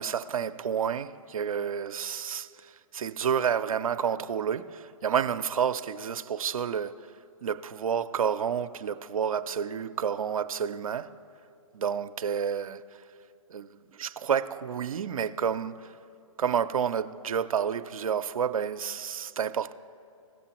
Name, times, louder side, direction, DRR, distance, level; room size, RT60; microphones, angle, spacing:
voice 1, 0.0-6.9 7.4-11.1 11.7-12.8 13.5-15.9 16.4-19.7, right 7 dB, 85° right, 0.5 m, -30 dB
17.0 x 6.7 x 2.9 m
hypercardioid pair, 140°, 17 cm